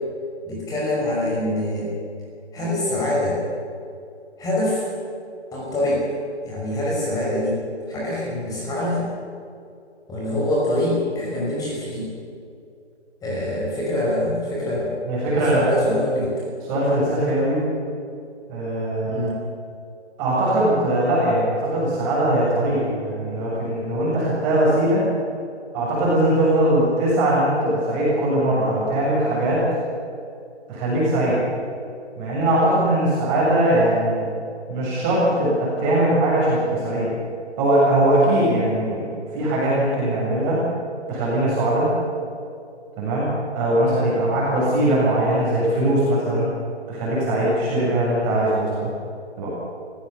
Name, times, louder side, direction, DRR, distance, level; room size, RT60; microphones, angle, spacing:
voice 1, 0.4-2.0 2.5-3.4 4.4-4.9 5.5-6.1 6.4-9.1 10.1-12.1 13.2-15.0 15.2-16.3 19.0-19.4, left 1 dB, 10° left, -4 dB, 5.6 m, -25 dB
voice 2, 15.1-15.7 16.7-17.6 18.5-19.3 20.2-25.1 25.7-29.6 30.7-31.4 32.2-34.3 34.7-37.1 37.6-39.1 39.3-40.6 41.1-41.9 43.0-43.3 43.5-46.5 46.9-48.9 49.4-49.5, right 1 dB, 20° right, -6 dB, 7.1 m, -20 dB
24.5 x 16.0 x 7.0 m, 2.5 s
figure-of-eight pair, 150°, 34 cm